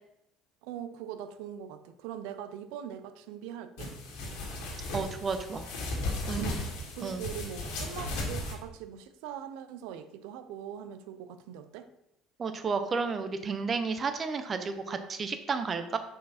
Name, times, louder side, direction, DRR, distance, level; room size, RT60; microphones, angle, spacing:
voice 1, 0.6-3.9 6.3-11.9, right 9 dB, 85° right, 11 dB, 0.6 m, -42 dB
sound 1, 3.8-8.5, left 2 dB, 85° left, 2.0 m, -36 dB
voice 2, 4.9-5.6 6.3-6.5 7.0-7.2 12.4-16.0, right 5 dB, 25° right, 9 dB, 0.6 m, -32 dB
6.2 x 5.1 x 4.2 m, 0.85 s
cardioid pair, 150°, 0 cm